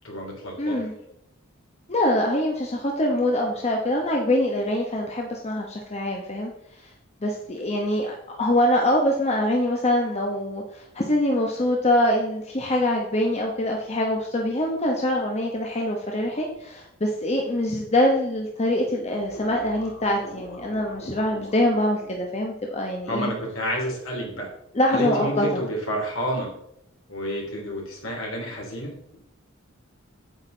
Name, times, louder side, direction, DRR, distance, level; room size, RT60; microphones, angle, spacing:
voice 1, 0.0-1.1 21.3-21.4 23.1-24.5 24.9-26.5 27.1-29.2, equal, 70° left, -1 dB, 3.3 m, -30 dB
voice 2, 0.6-0.9 1.9-6.5 7.2-23.3 24.7-25.5, left 1 dB, 30° left, 0 dB, 1.0 m, -24 dB
sound 1, 19.1-22.3, left 1 dB, 50° left, 2.2 m, -43 dB
8.9 x 8.1 x 3.9 m, 0.76 s
head